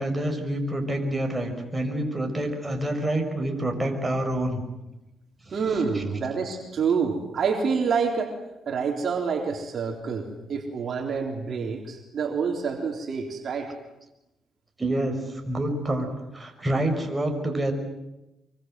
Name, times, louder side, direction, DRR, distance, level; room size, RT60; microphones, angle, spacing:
voice 1, 0.0-4.6 5.5-5.6 5.9-6.0 14.8-16.1 16.3-17.7, right 1 dB, 15° right, 3 dB, 5.8 m, -27 dB
voice 2, 5.5-8.4 8.7-13.7, right 5 dB, 55° right, 2 dB, 3.8 m, -27 dB
25.5 x 24.0 x 7.8 m, 0.94 s
cardioid pair, 90°, 0 cm